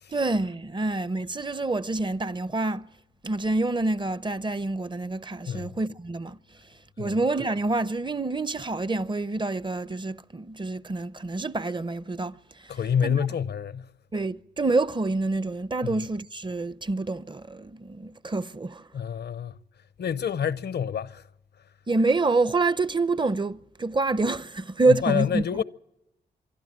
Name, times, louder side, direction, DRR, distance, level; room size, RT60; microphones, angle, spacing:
voice 1, 0.1-2.9 3.2-6.4 7.0-13.2 14.1-18.9 21.9-25.4, right 3 dB, 25° right, 0.7 m, -27 dB
voice 2, 12.7-13.9 15.8-16.0 18.9-19.6 20.0-21.3 24.9-25.6, left 8 dB, 70° left, 0.7 m, -28 dB
25.0 x 12.0 x 8.6 m
cardioid pair, 55°, 18 cm